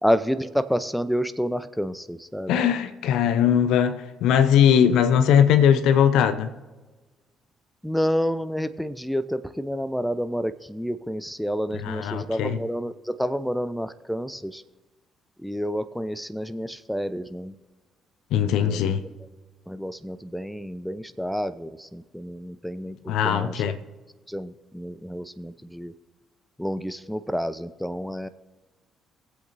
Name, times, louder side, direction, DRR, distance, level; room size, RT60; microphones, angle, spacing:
voice 1, 0.0-2.6 7.8-14.6 15.4-17.5 18.6-18.9 19.7-23.5 24.3-25.9 26.6-28.3, equal, ahead, 0.6 m, -29 dB
voice 2, 2.5-6.5 11.7-12.6 18.3-19.0 23.1-23.8, left 9 dB, 70° left, 0.7 m, -20 dB
21.0 x 7.9 x 2.7 m
hypercardioid pair, 45°, 0 cm